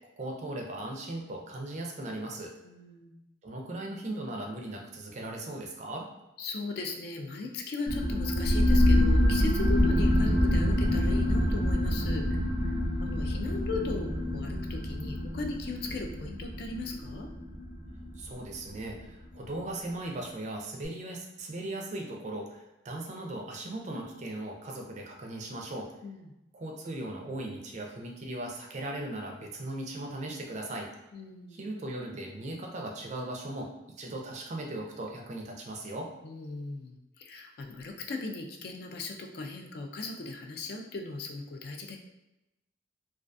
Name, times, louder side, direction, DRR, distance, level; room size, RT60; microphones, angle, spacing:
voice 1, 0.2-2.5 3.4-6.1 18.1-25.9 26.5-30.9 31.5-33.7 34.0-36.1, right 1 dB, 40° right, 0 dB, 0.4 m, -38 dB
voice 2, 2.6-3.2 6.4-12.4 12.6-17.3 26.0-26.3 31.1-31.6 36.2-42.0, left 3 dB, 55° left, 3 dB, 0.3 m, -38 dB
sound 1, 7.9-19.0, left 1 dB, ahead, 0.6 m, -26 dB
2.3 x 2.2 x 2.5 m, 0.96 s
head